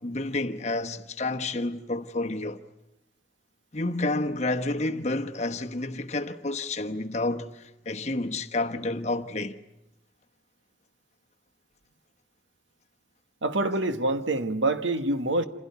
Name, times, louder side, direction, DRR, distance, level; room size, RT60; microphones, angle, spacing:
voice 1, 0.0-2.6 3.7-7.5 7.8-9.6, left 2 dB, 35° left, 1.1 m, -29 dB
voice 2, 13.4-15.4, right 2 dB, 90° right, 1.4 m, -26 dB
27.0 x 16.0 x 9.5 m
head